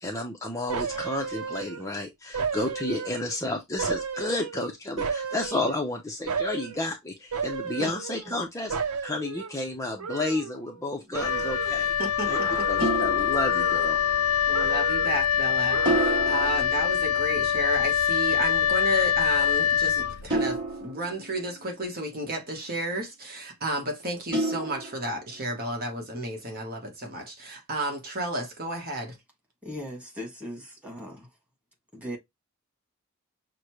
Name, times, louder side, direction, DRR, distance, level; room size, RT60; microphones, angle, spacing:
voice 1, 0.0-11.9 12.3-12.4 12.7-14.0, left 2 dB, 15° left, 0.6 m, -31 dB
sound 1, 0.7-2.0 2.3-3.4 3.8-5.9 6.3-6.8 7.3-8.4 8.7-10.9 11.1-11.8 12.3-13.1 13.4-14.2 14.5-15.2 15.7-16.5 16.9-17.0, right 6 dB, 85° right, 0.7 m, -34 dB
sound 2, 10.3-10.6 12.8-14.3 15.8-17.8 20.3-22.0 24.3-25.5, right 2 dB, 20° right, 2.2 m, -31 dB
Wind instrument woodwind instrument, 11.1-20.6, left 9 dB, 80° left, 0.4 m, -24 dB
voice 2, 12.0-12.9 14.5-29.2, right 1 dB, 45° right, 1.2 m, -32 dB
voice 3, 29.6-31.3 31.9-32.2, equal, 5° right, 1.7 m, -38 dB
6.4 x 2.1 x 3.0 m
head